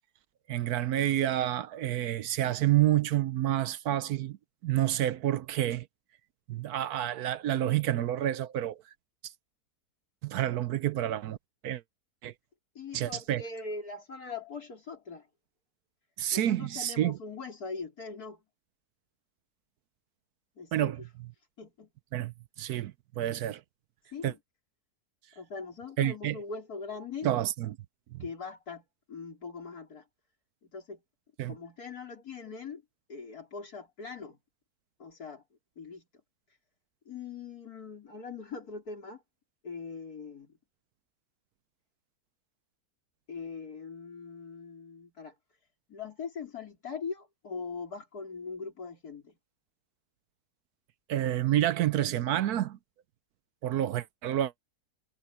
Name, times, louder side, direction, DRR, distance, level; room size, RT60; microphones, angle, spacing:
voice 1, 0.5-4.4 4.6-5.9 6.5-8.8 9.2-9.3 10.2-11.4 11.6-11.8 12.2-12.3 12.9-13.4 16.2-17.2 20.7-21.0 22.1-23.6 24.2-24.3 26.0-26.4 27.2-27.8 28.1-28.2 31.4-31.6 51.1-52.8 53.6-54.5, right 12 dB, 70° right, 1.1 m, -29 dB
voice 2, 12.7-15.3 16.3-18.4 20.6-20.9 21.6-21.9 24.1-24.4 25.4-27.3 28.2-30.0 30.6-31.0 31.5-32.8 33.1-34.4 35.0-35.4 35.8-36.1 37.1-39.2 39.6-40.5 43.3-45.3 45.9-49.4, left 5 dB, 65° left, 4.5 m, -41 dB
omnidirectional pair, 1.7 m